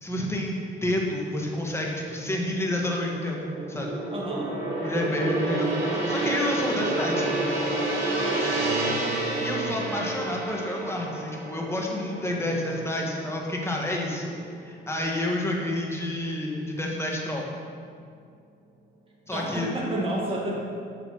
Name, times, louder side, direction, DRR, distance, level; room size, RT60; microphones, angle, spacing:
voice 1, 0.0-3.4 3.7-4.0 4.8-7.3 9.4-14.3 14.6-17.4 19.3-19.7, left 1 dB, 15° left, -1 dB, 1.6 m, -29 dB
Gong, 1.7-13.9 14.2-14.5, right 2 dB, 85° right, 2.3 m, -30 dB
voice 2, 4.1-4.5 8.5-10.3 12.3-12.7 19.3-20.6, right 1 dB, 25° right, -4 dB, 2.1 m, -32 dB
7.5 x 5.9 x 6.1 m, 2.2 s
cardioid pair, 90°, 20 cm